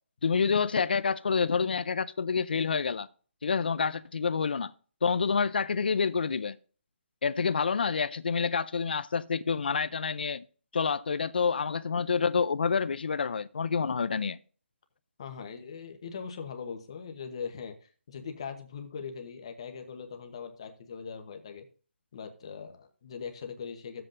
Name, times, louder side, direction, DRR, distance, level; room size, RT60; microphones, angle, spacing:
voice 1, 0.2-3.1 3.4-4.7 5.0-6.6 7.2-10.4 10.7-14.4, left 5 dB, 50° left, 0.4 m, -28 dB
voice 2, 15.2-21.7 22.1-24.1, left 6 dB, 25° left, 1.0 m, -41 dB
14.0 x 7.7 x 2.6 m
hypercardioid pair, 175°, 7 cm